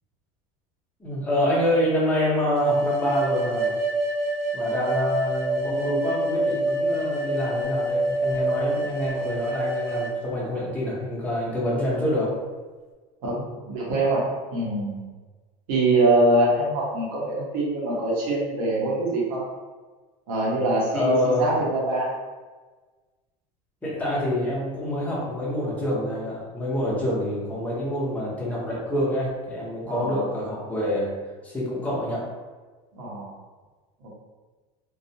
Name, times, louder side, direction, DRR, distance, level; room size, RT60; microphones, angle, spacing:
voice 1, 1.0-3.7 4.5-12.3 20.9-21.6 23.8-31.1 31.4-32.4, left 1 dB, 10° left, -7 dB, 0.7 m, -26 dB
sound 1, 2.6-10.1, right 1 dB, 35° right, 0.4 m, -26 dB
voice 2, 13.2-14.2 14.5-15.1 15.7-19.4 20.3-22.1 29.8-30.3 32.9-33.3 34.0-34.1, right 2 dB, 85° right, -5 dB, 1.0 m, -24 dB
2.3 x 2.1 x 2.7 m, 1.3 s
cardioid pair, 150°, 17 cm